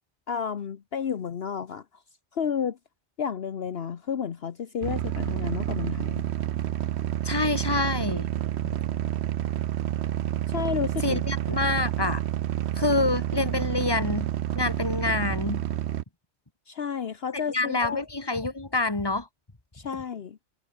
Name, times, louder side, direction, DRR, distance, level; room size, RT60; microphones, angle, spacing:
voice 1, 0.3-1.8 2.3-2.8 3.2-6.2 10.5-11.2 11.5-11.6 16.7-18.0 19.7-20.4, left 7 dB, 60° left, 1.2 m, -31 dB
sound 1, 4.8-16.0, right 11 dB, 70° right, 0.9 m, -29 dB
voice 2, 7.2-8.3 11.0-12.2 12.8-15.6 17.3-19.3, left 2 dB, 20° left, 2.0 m, -27 dB
omnidirectional pair, 1.2 m